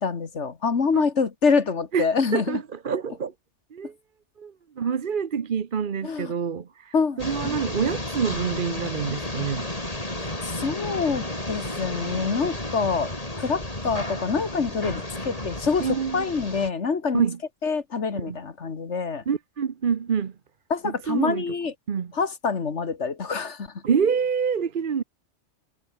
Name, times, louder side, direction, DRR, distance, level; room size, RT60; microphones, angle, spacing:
voice 1, 0.0-2.6 6.0-6.3 6.9-7.6 10.4-13.1 13.4-17.2 17.6-19.2 20.7-21.7 22.1-23.7, left 5 dB, 75° left, 2.1 m, -26 dB
voice 2, 1.9-3.3 3.7-3.9 4.4-9.7 15.8-16.4 17.1-17.4 18.1-18.4 19.3-20.3 20.8-21.5 21.9-22.1 23.8-25.0, right 6 dB, 50° right, 1.0 m, -27 dB
sound 1, 7.2-16.7, left 1 dB, 30° left, 4.5 m, -32 dB
omnidirectional pair, 1.2 m